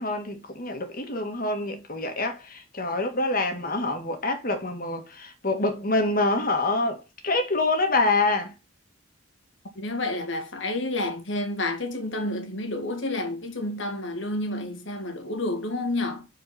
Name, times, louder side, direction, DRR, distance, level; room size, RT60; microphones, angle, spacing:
voice 1, 0.0-8.5, left 2 dB, 45° left, 1.8 m, -26 dB
voice 2, 9.8-16.3, left 2 dB, 65° left, 1.9 m, -30 dB
6.1 x 4.6 x 5.8 m
head